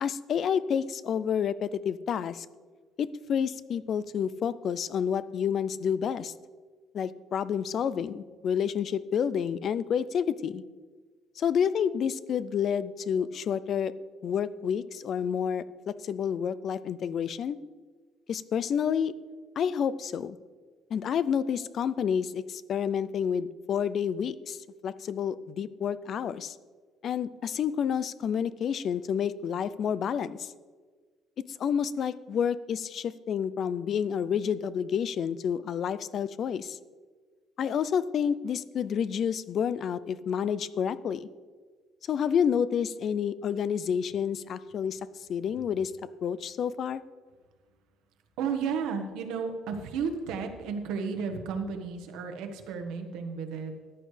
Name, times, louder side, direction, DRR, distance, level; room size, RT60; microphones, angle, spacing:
voice 1, 0.0-2.5 3.0-6.3 6.9-10.6 11.4-13.9 14.2-17.6 18.3-19.1 19.6-20.4 20.9-24.6 24.8-26.6 27.0-30.5 31.6-36.8 37.6-41.3 42.1-45.0 45.3-45.9 46.2-47.0, left 8 dB, 40° left, 17 dB, 0.4 m, -29 dB
voice 2, 48.4-53.7, right 6 dB, 85° right, 5 dB, 1.3 m, -33 dB
14.0 x 10.0 x 3.3 m, 1.5 s
cardioid pair, 170°, 0 cm